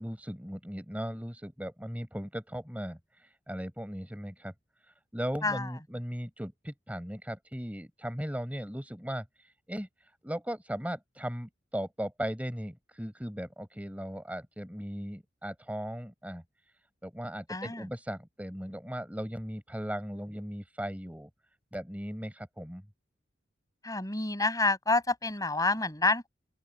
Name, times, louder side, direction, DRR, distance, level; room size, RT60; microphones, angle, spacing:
voice 1, 0.0-4.5 4.8-16.4 17.0-21.3 21.7-22.8, equal, 10° right, 4.5 m, -38 dB
voice 2, 17.5-17.8 23.8-26.3, left 3 dB, 20° left, 7.2 m, -28 dB
open air
head